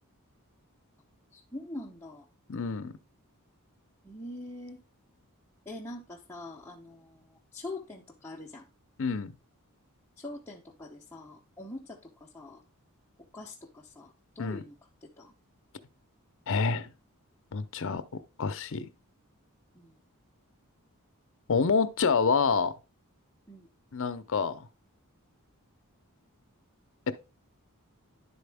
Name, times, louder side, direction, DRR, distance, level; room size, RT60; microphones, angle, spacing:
voice 1, 1.3-2.3 4.0-4.8 5.7-8.7 10.2-12.6 13.3-14.7 15.2-15.3 19.8-19.9 23.5-23.7, left 2 dB, 10° left, 0.7 m, -43 dB
voice 2, 2.5-2.9 9.0-9.3 14.4-14.6 16.5-16.9 17.5-18.0 18.4-18.9 21.5-22.7 23.9-24.6 27.1-27.2, left 5 dB, 60° left, 0.6 m, -27 dB
11.0 x 4.2 x 3.4 m
head